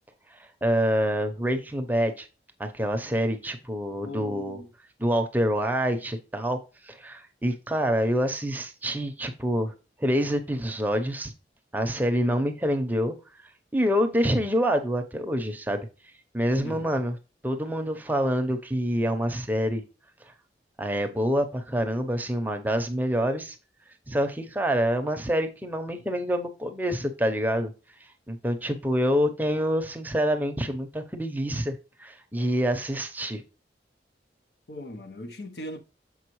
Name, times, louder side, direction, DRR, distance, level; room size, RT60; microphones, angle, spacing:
voice 1, 0.4-2.3 2.6-4.6 5.0-6.6 6.8-9.7 10.0-11.3 11.7-13.1 13.7-15.8 16.3-17.1 17.4-19.8 20.8-23.6 24.1-27.7 28.3-33.4, equal, 10° right, 0.7 m, -26 dB
voice 2, 4.0-4.7 16.6-17.0 34.7-35.8, left 1 dB, 70° left, 0.9 m, -39 dB
7.0 x 5.1 x 3.0 m
head